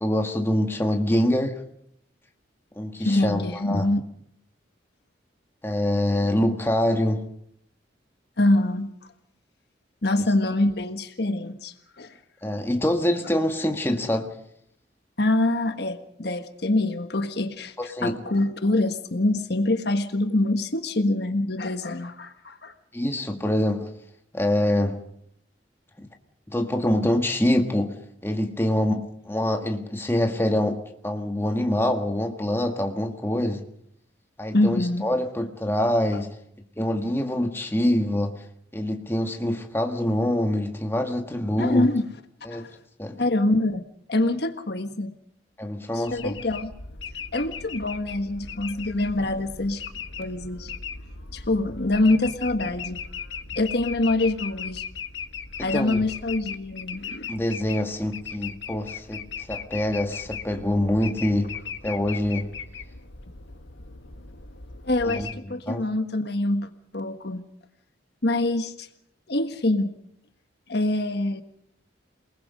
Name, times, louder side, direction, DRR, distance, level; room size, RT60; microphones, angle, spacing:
voice 1, 0.0-1.6 2.8-3.9 5.6-7.2 12.4-14.3 17.8-18.2 22.9-23.9 24.3-25.0 26.0-26.1 26.5-27.9 28.2-33.6 34.4-36.4 36.8-38.4 38.7-41.9 42.4-42.7 43.0-43.2 45.6-46.4 55.6-56.0 57.3-61.5 61.8-62.5 65.0-65.3 65.7-65.8, left 1 dB, 10° left, 4 dB, 1.7 m, -25 dB
voice 2, 3.0-4.0 8.4-8.9 10.0-12.1 15.2-22.7 34.5-35.1 41.6-42.0 42.5-42.7 43.2-45.1 45.9-46.7 47.3-49.8 50.2-50.7 51.3-53.0 53.5-54.8 55.6-57.3 64.8-67.4 68.2-68.9 69.3-69.9 70.7-71.4, left 2 dB, 55° left, 8 dB, 1.4 m, -25 dB
sound 1, 46.1-65.3, left 6 dB, 75° left, 1.7 m, -38 dB
28.0 x 20.0 x 5.2 m, 0.71 s
head